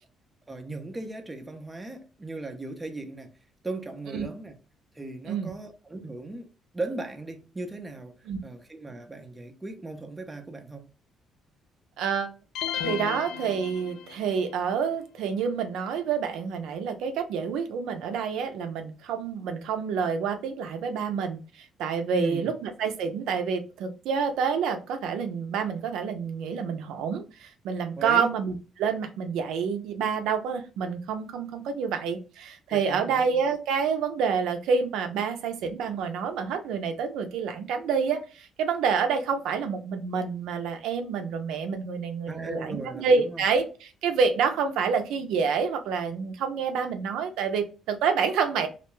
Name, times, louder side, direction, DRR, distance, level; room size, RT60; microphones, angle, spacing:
voice 1, 0.5-3.3 3.6-4.5 4.9-8.1 8.4-10.9 22.1-22.5 28.0-28.3 32.7-33.1 42.3-43.4, right 2 dB, 15° right, 0.4 m, -37 dB
voice 2, 12.0-12.3 12.8-48.7, right 6 dB, 85° right, 0.5 m, -28 dB
sound 1, 12.5-14.4, left 8 dB, 80° left, 0.4 m, -33 dB
2.3 x 2.2 x 3.0 m
cardioid pair, 125°, 0 cm